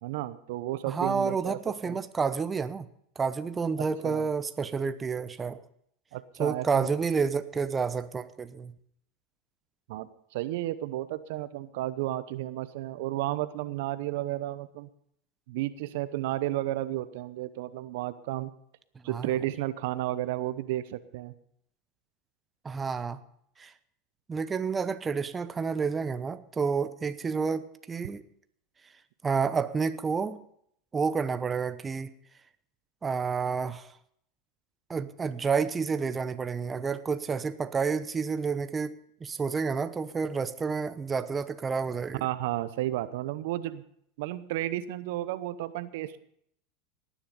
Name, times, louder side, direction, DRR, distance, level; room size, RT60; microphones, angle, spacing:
voice 1, 0.0-1.6 1.8-2.0 3.8-4.3 6.1-6.9 9.9-14.9 15.5-18.5 19.0-21.3 42.2-43.8 44.2-46.2, right 15 dB, 70° right, 14 dB, 0.8 m, -32 dB
voice 2, 0.9-2.9 3.2-5.6 6.4-8.7 19.0-19.3 22.6-23.2 23.6-23.7 24.3-28.2 29.2-30.4 30.9-32.1 33.0-33.9 34.9-39.0 39.2-42.3, right 5 dB, 20° right, 12 dB, 0.9 m, -29 dB
18.5 x 10.5 x 5.3 m, 0.70 s
hypercardioid pair, 95°, 0 cm